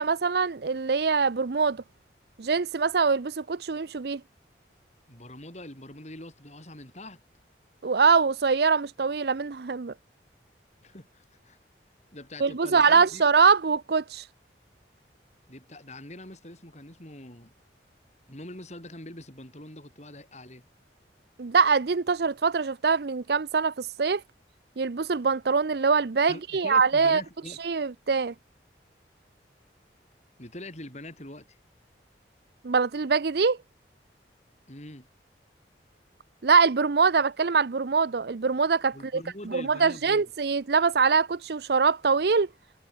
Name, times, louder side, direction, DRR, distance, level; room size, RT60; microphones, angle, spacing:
voice 1, 0.0-1.8 2.4-4.2 7.8-9.9 12.4-14.3 21.4-24.2 24.8-27.2 27.6-28.3 32.6-33.6 36.4-39.2 39.5-42.5, right 5 dB, 60° right, 0.6 m, -23 dB
voice 2, 5.1-7.2 10.8-11.6 12.1-13.2 15.5-17.5 18.3-20.6 26.3-27.6 30.4-31.6 34.7-35.1 38.9-40.2, left 1 dB, 40° left, 7.8 m, -44 dB
head